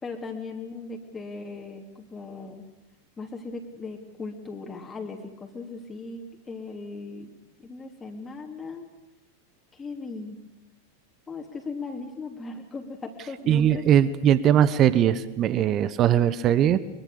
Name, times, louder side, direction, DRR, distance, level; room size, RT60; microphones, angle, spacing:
voice 1, 0.0-2.6 3.2-7.3 7.6-8.9 9.7-10.4 11.3-13.8, left 3 dB, 15° left, 1 dB, 3.1 m, -38 dB
voice 2, 13.5-16.8, right 10 dB, 30° right, 17 dB, 1.0 m, -20 dB
24.0 x 23.5 x 6.8 m, 1.0 s
figure-of-eight pair, 90°, 0 cm